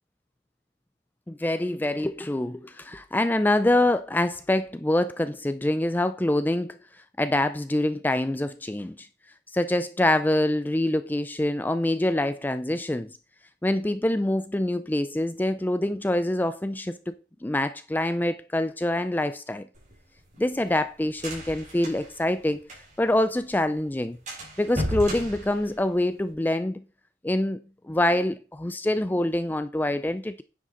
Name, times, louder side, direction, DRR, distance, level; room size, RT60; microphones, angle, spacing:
voice 1, 1.3-6.8 7.2-9.1 9.5-13.1 13.6-17.1 17.4-19.7 20.4-22.6 23.0-24.2 24.6-26.8 27.2-27.6 27.9-30.4, left 1 dB, 10° left, 0.4 m, -25 dB
sound 1, 19.7-23.2 23.4-23.5 23.8-24.0 24.3-26.3, equal, 40° right, 4.5 m, -35 dB
9.7 x 7.5 x 3.9 m
head